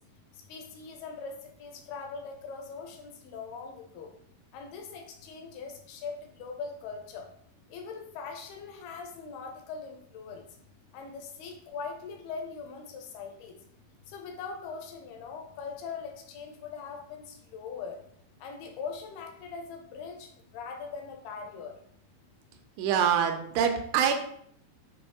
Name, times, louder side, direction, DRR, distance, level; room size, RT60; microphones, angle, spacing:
voice 1, 0.5-4.1 4.5-7.2 7.7-10.4 10.9-13.6 14.1-18.0 18.4-21.7, left 5 dB, 75° left, 3 dB, 2.4 m, -41 dB
voice 2, 22.8-24.1, right 8 dB, 85° right, 5 dB, 3.1 m, -25 dB
8.0 x 3.0 x 4.7 m, 0.66 s
omnidirectional pair, 5.4 m